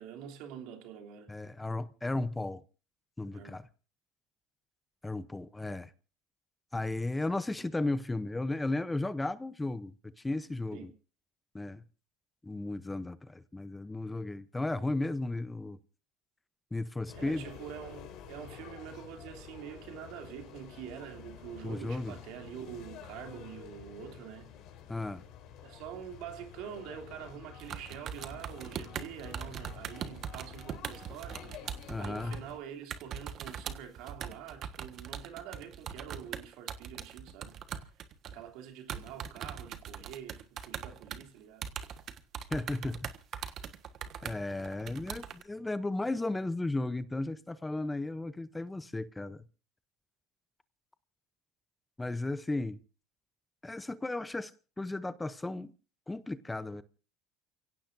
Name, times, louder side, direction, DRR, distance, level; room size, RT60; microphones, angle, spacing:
voice 1, 0.0-1.3 3.3-3.5 10.7-10.9 17.1-24.5 25.6-37.6 37.8-37.9 38.2-41.7, right 9 dB, 75° right, 3.0 m, -46 dB
voice 2, 1.3-2.6 3.2-3.6 5.0-5.9 6.7-10.9 11.5-11.8 12.4-15.8 16.7-17.4 21.6-22.1 24.9-25.2 31.9-32.4 42.5-43.5 44.2-49.4 52.0-52.8 53.6-54.5 54.8-55.7 56.1-56.8, left 2 dB, 10° left, 0.8 m, -35 dB
sound 1, 17.1-32.6, left 8 dB, 60° left, 4.5 m, -49 dB
sound 2, 27.6-32.5 32.9-38.5 38.9-41.2 41.6-45.4, right 8 dB, 50° right, 1.4 m, -41 dB
29.5 x 17.0 x 2.7 m
supercardioid pair, 115°, 0 cm